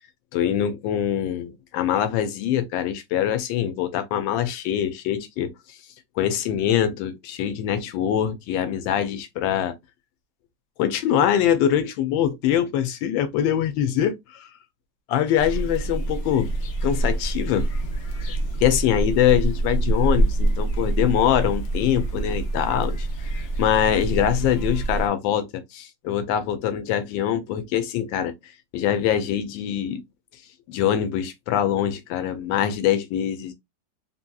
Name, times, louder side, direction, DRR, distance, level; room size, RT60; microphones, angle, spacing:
voice 1, 0.3-5.5 6.2-9.7 10.8-14.5 15.1-16.5 16.8-17.7 18.6-23.1 23.6-30.0 30.7-33.5, left 10 dB, 90° left, 1.3 m, -23 dB
sound 1, 15.4-25.1, right 2 dB, 60° left, 1.1 m, -26 dB
3.1 x 2.7 x 2.2 m
omnidirectional pair, 2.0 m